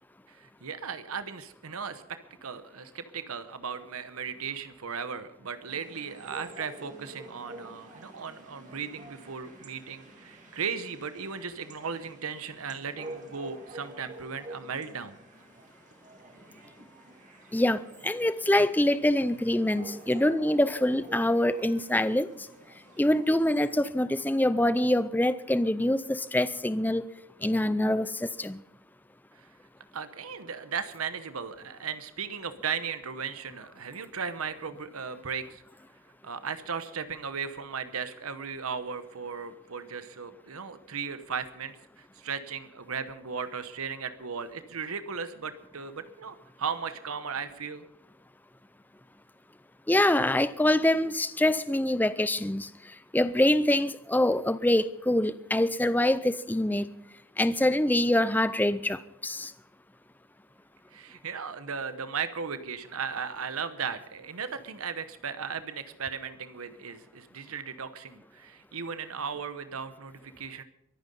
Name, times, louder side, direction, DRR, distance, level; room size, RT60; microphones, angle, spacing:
voice 1, 0.3-15.2 29.3-29.5 29.9-35.6 36.2-47.8 60.9-70.6, right 6 dB, 85° right, 11 dB, 1.0 m, -36 dB
sound 1, 5.7-23.9, right 2 dB, 35° right, 2.7 m, -48 dB
voice 2, 17.5-22.3 23.0-27.0 27.4-28.6 49.9-52.7 53.1-56.9 57.4-59.5, left 1 dB, 10° left, 14 dB, 0.5 m, -25 dB
23.0 x 9.4 x 5.4 m, 0.82 s
head